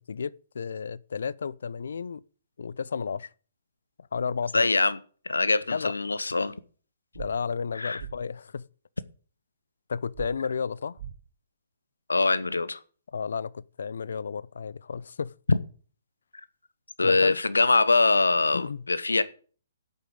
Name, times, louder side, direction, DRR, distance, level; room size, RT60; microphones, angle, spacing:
voice 1, 0.1-2.2 2.6-3.3 4.1-4.7 5.7-5.9 7.2-8.7 9.9-11.0 13.1-15.3 17.0-17.4 18.5-18.8, left 6 dB, 70° left, 0.6 m, -32 dB
voice 2, 4.5-5.0 5.2-6.5 7.7-8.0 12.1-12.8 15.5-15.6 17.0-19.2, left 3 dB, 85° left, 0.9 m, -23 dB
sound 1, 7.1-7.3 8.0-8.1 10.1-10.3 11.0-11.1, right 10 dB, 50° right, 2.5 m, -38 dB
8.4 x 8.3 x 7.7 m
figure-of-eight pair, 130°, 0 cm